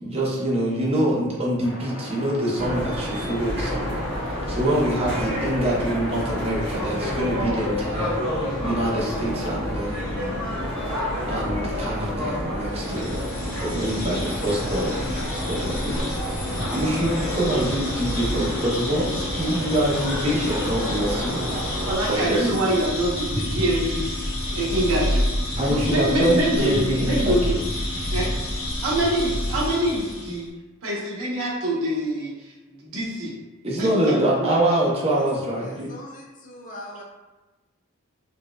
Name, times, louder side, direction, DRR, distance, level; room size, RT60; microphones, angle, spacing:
voice 1, 0.0-4.0 4.5-10.4 11.3-13.2 13.6-15.0 15.4-22.7 25.6-27.6 33.6-35.9, right 1 dB, 30° right, -5 dB, 0.7 m, -25 dB
sound 1, 1.6-6.9, left 1 dB, 60° left, 0.9 m, -38 dB
sound 2, 2.6-22.0, equal, 55° right, 1.2 m, -29 dB
sound 3, 12.7-30.4, left 1 dB, 80° left, 1.2 m, -29 dB
voice 2, 21.9-24.1 24.5-25.3 25.6-27.5 28.1-28.3 28.8-30.5 30.8-32.5 32.8-33.3 33.8-34.3, right 1 dB, 85° right, -4 dB, 0.9 m, -25 dB
voice 3, 35.6-37.0, left 1 dB, 35° left, -1 dB, 0.5 m, -41 dB
4.1 x 2.3 x 2.2 m, 1.1 s
head